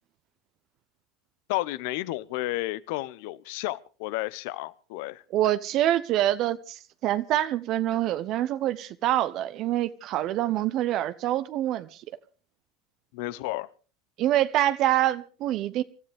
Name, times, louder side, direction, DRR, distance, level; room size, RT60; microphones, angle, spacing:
voice 1, 1.5-5.2 13.1-13.7, left 18 dB, 70° left, 0.8 m, -32 dB
voice 2, 5.3-11.9 14.2-15.8, right 13 dB, 50° right, 0.8 m, -25 dB
27.5 x 13.0 x 3.5 m
hypercardioid pair, 90°, 0 cm